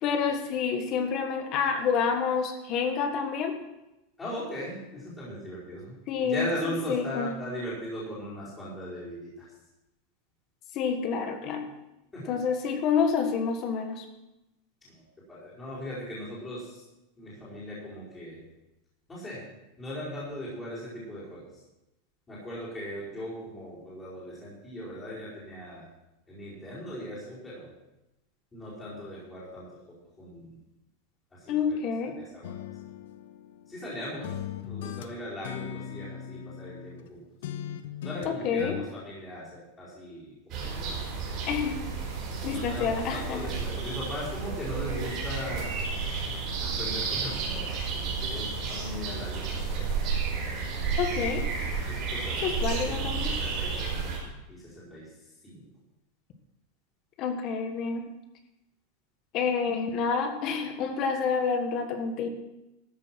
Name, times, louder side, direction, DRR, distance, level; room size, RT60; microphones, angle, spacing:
voice 1, 0.0-3.5 6.1-7.3 10.7-11.7 12.3-14.0 31.5-32.2 38.2-38.8 41.5-41.8 42.4-43.4 51.0-51.4 52.4-53.3 57.2-58.1 59.3-62.3, left 6 dB, 30° left, 6 dB, 1.5 m, -28 dB
voice 2, 4.2-9.5 12.1-12.3 14.8-15.0 15.3-16.8 17.2-18.4 19.1-19.4 19.8-21.5 22.3-25.9 26.3-27.7 28.5-30.6 31.3-31.8 32.2-32.5 33.7-34.4 34.6-37.2 38.0-41.5 42.4-45.7 46.6-50.0 52.1-53.0 53.3-54.2 54.5-55.1 55.4-55.6, equal, 10° left, -9 dB, 4.7 m, -39 dB
sound 1, 32.4-33.9 34.2-37.1 37.4-38.8, left 10 dB, 65° left, 0.9 m, -39 dB
sound 2, 40.5-54.2, right 5 dB, 30° right, 5.1 m, -32 dB
13.5 x 8.1 x 6.0 m, 0.94 s
supercardioid pair, 175°, 0 cm